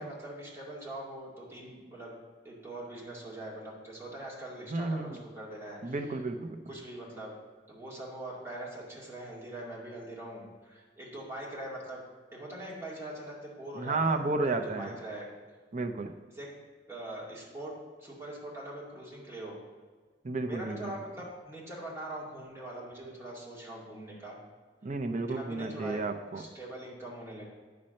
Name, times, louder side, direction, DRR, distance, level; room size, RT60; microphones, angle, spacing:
voice 1, 0.0-2.2 2.4-6.2 6.7-7.4 7.7-12.0 12.3-15.3 16.3-16.5 16.9-19.6 20.5-24.4 25.3-26.0 26.3-27.5, right 1 dB, 15° right, -5 dB, 2.2 m, -42 dB
voice 2, 4.7-5.2 5.8-6.6 13.8-14.9 15.7-16.1 20.2-20.9 24.8-26.4, right 3 dB, 40° right, 6 dB, 0.6 m, -32 dB
9.5 x 4.3 x 6.4 m, 1.5 s
head